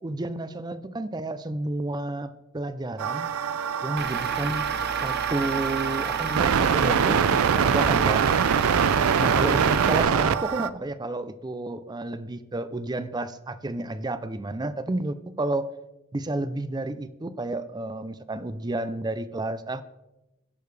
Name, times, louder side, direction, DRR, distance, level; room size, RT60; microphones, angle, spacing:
voice 1, 0.0-3.3 3.8-4.7 5.0-8.3 9.2-15.7 16.1-19.8, right 2 dB, 20° right, 0.4 m, -31 dB
sound 1, 3.0-10.7, right 7 dB, 75° right, 0.4 m, -24 dB
Truck / Idling, 4.0-10.0, right 5 dB, 50° right, 0.8 m, -32 dB
17.0 x 6.8 x 3.3 m
head